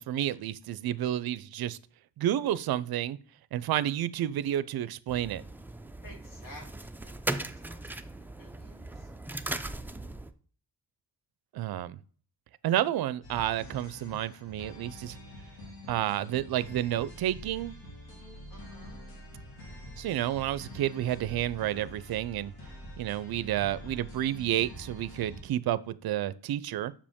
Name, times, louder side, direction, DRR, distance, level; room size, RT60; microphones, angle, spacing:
voice 1, 0.0-1.8 2.2-3.2 3.5-5.4 11.5-12.0 12.6-15.2 15.9-17.7 20.0-22.5 23.0-26.9, right 12 dB, 65° right, 0.5 m, -30 dB
sound 1, 5.1-10.3, right 2 dB, 5° right, 0.4 m, -38 dB
voice 2, 6.0-9.1 18.5-19.0, left 1 dB, 55° left, 2.8 m, -53 dB
sound 2, 13.2-25.4, equal, 75° left, 3.3 m, -46 dB
7.0 x 5.0 x 3.6 m
cardioid pair, 105°, 39 cm